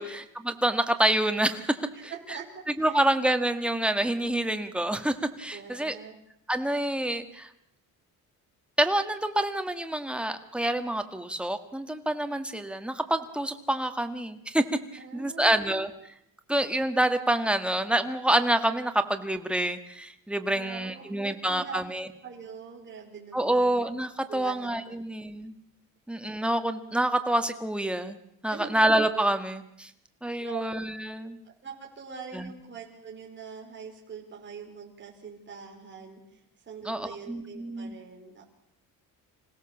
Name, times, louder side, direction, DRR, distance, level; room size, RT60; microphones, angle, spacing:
voice 1, 0.0-2.1 2.8-6.0 6.5-7.5 8.8-14.6 15.1-15.9 16.5-22.0 23.3-25.5 26.1-28.2 28.4-29.9 30.2-31.4 32.3-32.4 36.8-38.0, right 1 dB, 5° right, 7 dB, 1.8 m, -27 dB
voice 2, 1.9-3.0 5.5-6.2 15.0-15.7 20.5-21.8 22.2-23.7 24.3-25.0 28.5-28.8 30.4-30.6 31.4-38.4, right 6 dB, 30° right, -1 dB, 4.5 m, -43 dB
26.5 x 17.0 x 7.2 m, 0.76 s
cardioid pair, 130°, 36 cm